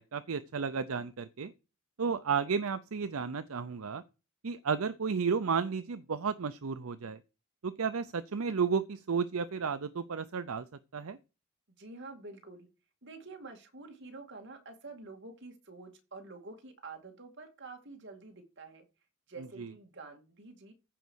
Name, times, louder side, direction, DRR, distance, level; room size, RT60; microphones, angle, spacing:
voice 1, 0.0-1.5 2.0-4.0 4.4-7.2 7.6-11.2 19.6-19.7, right 5 dB, 75° right, 0.6 m, -33 dB
voice 2, 11.8-12.7 13.0-18.8 19.3-20.7, right 3 dB, 55° right, 2.4 m, -48 dB
15.0 x 5.1 x 6.3 m
head